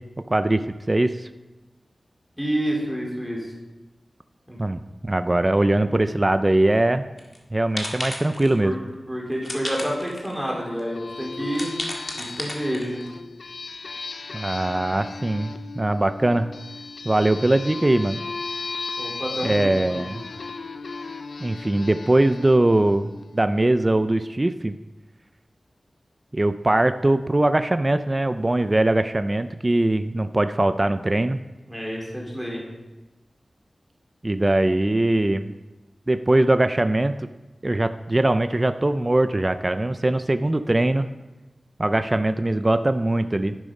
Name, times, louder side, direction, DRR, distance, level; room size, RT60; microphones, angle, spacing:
voice 1, 0.3-0.6 0.9-1.3 4.6-7.1 7.5-8.7 14.3-16.5 17.0-18.2 19.4-20.3 21.4-24.8 26.3-31.4 34.2-35.5 36.1-37.3 37.6-41.1 41.8-43.5, right 1 dB, 25° right, 10 dB, 0.4 m, -21 dB
voice 2, 2.4-3.5 4.5-4.6 8.6-8.8 9.1-11.8 12.1-13.0 19.0-20.0 31.6-32.6, equal, ahead, -3 dB, 3.3 m, -29 dB
sound 1, 7.2-7.4 7.8-8.6 9.4-10.4 10.8-10.9 11.5-13.1, left 1 dB, 40° left, 1.9 m, -33 dB
sound 2, 10.5-23.7, left 4 dB, 85° left, 0.5 m, -36 dB
11.0 x 8.5 x 5.3 m, 1.1 s
wide cardioid pair, 95°, 0 cm